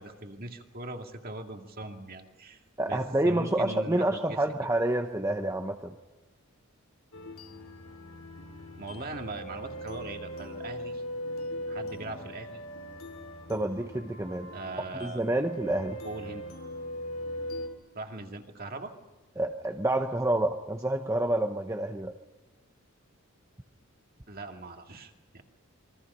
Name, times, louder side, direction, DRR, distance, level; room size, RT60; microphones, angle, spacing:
voice 1, 0.0-2.6 2.9-3.0 3.2-4.4 8.8-11.0 11.7-12.6 14.5-15.2 16.0-16.4 17.9-18.9 24.3-25.4, right 2 dB, 40° right, 4 dB, 2.2 m, -40 dB
voice 2, 2.8-6.0 13.5-14.5 15.0-16.0 19.4-22.1, right 1 dB, 15° right, 4 dB, 0.9 m, -28 dB
sound 1, 7.1-17.7, equal, 70° left, 3.0 m, -40 dB
27.5 x 23.0 x 5.6 m, 1.2 s
head